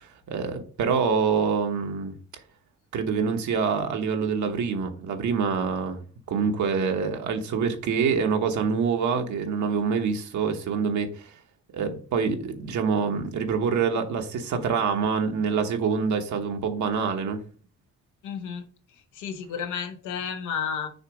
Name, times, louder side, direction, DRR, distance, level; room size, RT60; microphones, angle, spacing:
voice 1, 0.0-2.1 2.9-6.0 6.3-11.3 11.7-17.4, right 6 dB, 70° right, 1.1 m, -26 dB
voice 2, 18.2-18.6 19.1-20.9, left 7 dB, 85° left, 0.9 m, -32 dB
6.5 x 3.0 x 4.8 m
cardioid pair, 90°, 30 cm